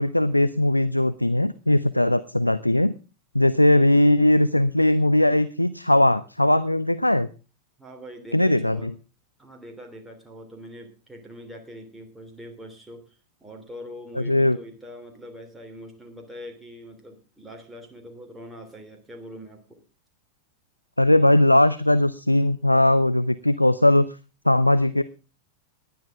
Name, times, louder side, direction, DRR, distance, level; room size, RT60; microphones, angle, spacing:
voice 1, 0.0-2.9 3.3-7.3 8.3-8.9 14.2-14.6 21.0-24.1 24.4-25.0, left 1 dB, 85° left, 14 dB, 0.6 m, -19 dB
voice 2, 7.8-8.9 9.4-19.8, equal, 5° right, 2 dB, 3.1 m, -43 dB
19.0 x 10.5 x 3.6 m, 0.33 s
figure-of-eight pair, 90°, 0 cm